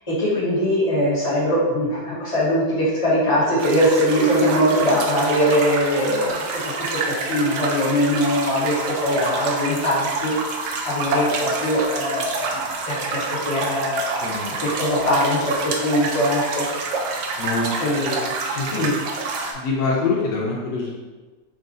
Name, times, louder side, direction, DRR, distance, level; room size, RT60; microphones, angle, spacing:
voice 1, 0.1-6.6 7.0-10.3 10.8-15.6 15.8-16.6 17.8-18.3 18.7-18.9, equal, 20° left, -8 dB, 1.0 m, -21 dB
sound 1, 3.6-19.5, right 3 dB, 70° right, 1.0 m, -28 dB
voice 2, 14.2-14.5 17.4-17.7 18.5-18.8 19.5-21.0, left 4 dB, 75° left, -3 dB, 1.2 m, -25 dB
3.7 x 2.4 x 3.7 m, 1.3 s
omnidirectional pair, 1.9 m